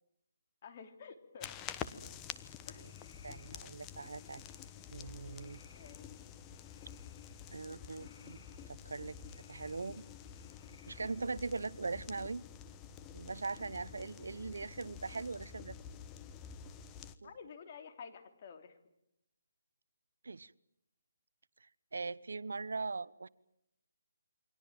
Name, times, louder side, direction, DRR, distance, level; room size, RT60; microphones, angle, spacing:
voice 1, 0.6-1.5 2.7-2.9 5.7-6.1 17.0-18.8, left 6 dB, 40° left, 7 dB, 3.3 m, -51 dB
sound 1, 1.4-17.2, left 8 dB, 15° left, 1.1 m, -49 dB
sound 2, 2.3-11.1, left 4 dB, 55° left, 5.7 m, -66 dB
voice 2, 3.2-4.4 4.9-5.6 7.5-8.4 8.7-9.2 9.5-10.0 10.9-12.5 13.1-15.8 17.2-17.3 20.2-20.5 21.9-23.3, right 4 dB, 80° right, 19 dB, 0.9 m, -40 dB
29.0 x 24.0 x 7.5 m, 0.79 s
hypercardioid pair, 160°, 0 cm